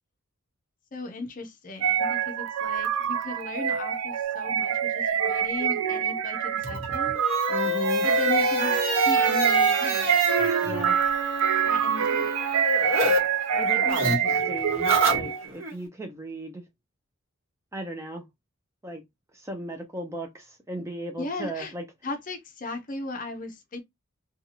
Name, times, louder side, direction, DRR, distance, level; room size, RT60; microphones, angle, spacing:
voice 1, 0.9-7.2 8.0-8.8 9.1-10.2 11.7-12.3 21.2-21.7 22.0-23.8, left 2 dB, 35° left, 0.5 m, -37 dB
sound 1, 1.8-15.5, right 8 dB, 85° right, 0.5 m, -25 dB
sound 2, 6.6-13.2 13.5-15.7, equal, 55° right, 1.3 m, -28 dB
voice 2, 7.5-8.1 10.6-11.0 13.6-16.6 17.7-18.3 18.8-19.0 19.3-21.8, right 1 dB, 15° right, 0.4 m, -36 dB
2.7 x 2.3 x 2.8 m
head